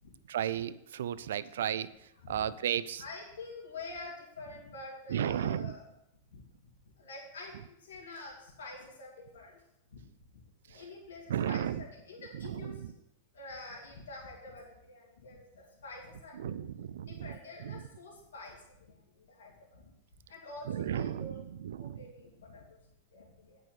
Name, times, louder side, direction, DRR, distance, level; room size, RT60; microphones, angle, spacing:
voice 1, 0.3-1.9 2.3-3.0 5.1-5.7 10.7-10.8 11.3-11.8 12.4-12.9 16.4-17.3 17.6-17.8 20.7-21.3 21.6-22.0, right 10 dB, 75° right, 15 dB, 0.5 m, -34 dB
voice 2, 3.0-5.8 6.3-6.7 7.0-9.6 9.9-10.1 10.7-13.0 13.3-16.7 17.1-18.6 18.9-19.9 20.3-21.4 21.8-22.8 23.1-23.6, left 2 dB, 80° left, -2 dB, 2.8 m, -47 dB
9.2 x 5.4 x 7.6 m, 0.83 s
hypercardioid pair, 115°, 0 cm